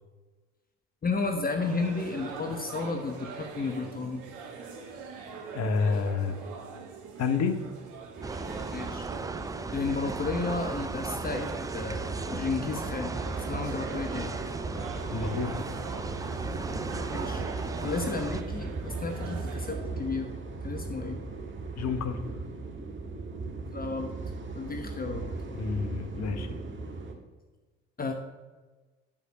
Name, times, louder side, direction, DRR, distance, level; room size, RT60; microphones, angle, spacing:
voice 1, 1.0-4.2 8.7-9.1 9.7-14.3 17.1-17.4 17.8-20.3 20.6-21.2 23.7-24.1 24.5-25.3 28.0-28.1, left 4 dB, 25° left, 5 dB, 1.0 m, -33 dB
sound 1, 1.6-19.8, right 5 dB, 65° right, 1.7 m, -43 dB
voice 2, 5.5-6.3 7.2-7.6 15.1-15.6 21.8-22.2 25.5-26.6, left 5 dB, 50° left, 9 dB, 1.2 m, -29 dB
sound 2, 8.2-18.4, right 3 dB, 10° right, 0.4 m, -37 dB
sound 3, 8.2-27.1, right 3 dB, 35° right, 1.7 m, -38 dB
10.5 x 5.1 x 6.5 m, 1.3 s
hypercardioid pair, 60°, 34 cm